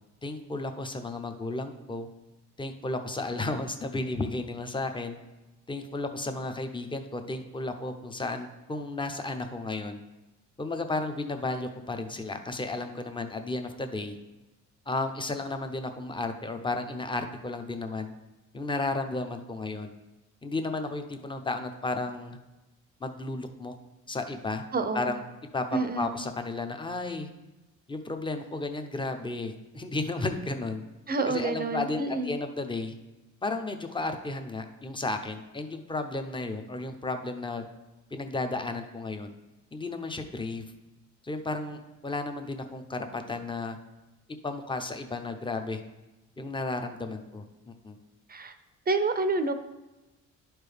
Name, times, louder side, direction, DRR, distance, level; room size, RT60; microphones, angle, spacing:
voice 1, 0.2-2.1 2.6-5.2 5.7-10.0 10.6-14.2 14.9-18.1 18.5-19.9 20.4-22.4 23.0-23.7 24.1-24.6 24.9-25.2 25.5-27.3 27.9-30.8 31.3-32.9 33.4-37.7 38.1-39.3 39.7-40.6 41.2-43.8 44.4-45.8 46.4-48.0, left 2 dB, 15° left, 7 dB, 0.7 m, -33 dB
voice 2, 24.7-25.1 25.7-26.2 31.1-32.3 48.3-48.5 48.9-49.5, right 3 dB, 30° right, 9 dB, 0.5 m, -28 dB
11.0 x 4.5 x 3.4 m, 1.1 s
cardioid pair, 90°, 30 cm